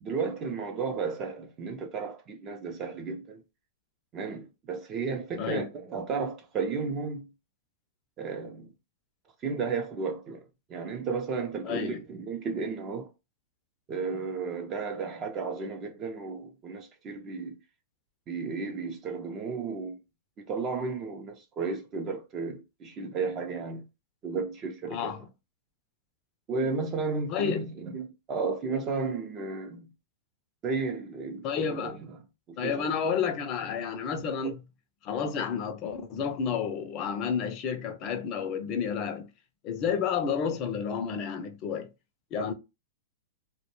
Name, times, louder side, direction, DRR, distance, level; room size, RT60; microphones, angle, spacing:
voice 1, 0.0-3.4 4.1-7.3 8.2-8.7 9.4-10.4 10.7-13.1 13.9-17.6 18.3-20.0 20.4-23.9 24.2-25.2 26.5-29.9 30.6-32.2 32.5-32.9 34.4-34.5, right 4 dB, 30° right, 0.5 m, -33 dB
voice 2, 11.6-12.0 24.9-25.2 27.3-27.6 31.4-32.0 32.6-34.6 35.0-39.3 39.6-41.9 42.3-42.5, left 7 dB, 40° left, 0.5 m, -30 dB
2.2 x 2.1 x 3.0 m
hypercardioid pair, 115°, 0 cm